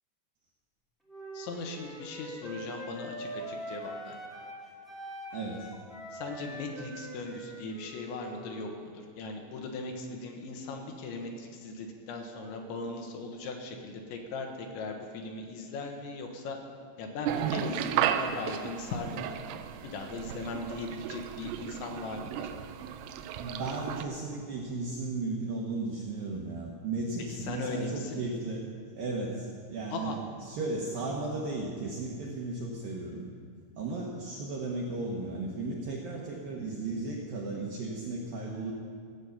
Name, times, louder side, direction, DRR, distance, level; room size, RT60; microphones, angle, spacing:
Wind instrument woodwind instrument, 1.1-4.6 4.8-8.7, equal, ahead, 0.5 m, -43 dB
voice 1, 1.3-4.2 6.1-16.6 17.0-19.2 19.8-22.5 27.3-28.2 29.9-30.2, left 3 dB, 75° left, 3 dB, 3.3 m, -38 dB
voice 2, 5.3-5.7 23.4-28.7 29.0-30.1 30.5-33.3 33.8-38.7, right 3 dB, 70° right, -3 dB, 2.2 m, -35 dB
sound 1, 17.3-24.0, right 9 dB, 90° right, 3.3 m, -34 dB
16.0 x 8.1 x 7.1 m, 2.2 s
omnidirectional pair, 5.7 m